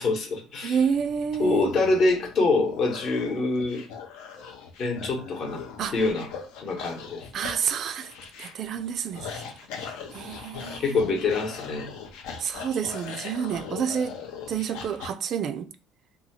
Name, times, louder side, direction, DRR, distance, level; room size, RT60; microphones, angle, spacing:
voice 1, 0.0-0.8 1.4-3.8 4.8-5.6 5.9-6.3 6.6-7.2 10.8-11.9, left 3 dB, 55° left, 0.9 m, -25 dB
voice 2, 0.6-1.7 5.8-6.0 7.3-8.1 8.4-9.4 9.8-11.0 12.4-14.2 14.5-15.7, right 7 dB, 55° right, 0.3 m, -29 dB
sound 1, 0.7-15.1, left 6 dB, 85° left, 0.5 m, -40 dB
2.7 x 2.3 x 2.8 m
cardioid pair, 110°, 0 cm